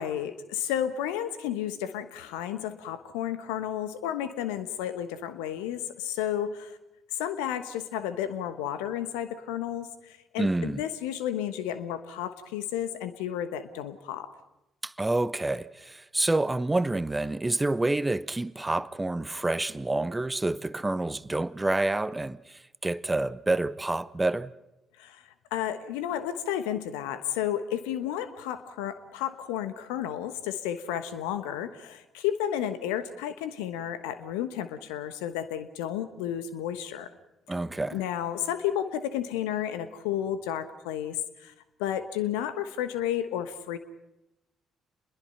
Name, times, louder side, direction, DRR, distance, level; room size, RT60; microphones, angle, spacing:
voice 1, 0.0-6.8 7.1-14.3 25.0-37.1 37.9-41.5 41.8-43.8, left 10 dB, 70° left, 1.2 m, -32 dB
voice 2, 10.4-10.8 14.8-24.5 37.5-38.0, right 2 dB, 15° right, 0.8 m, -28 dB
28.0 x 21.5 x 5.7 m
figure-of-eight pair, 45°, 0 cm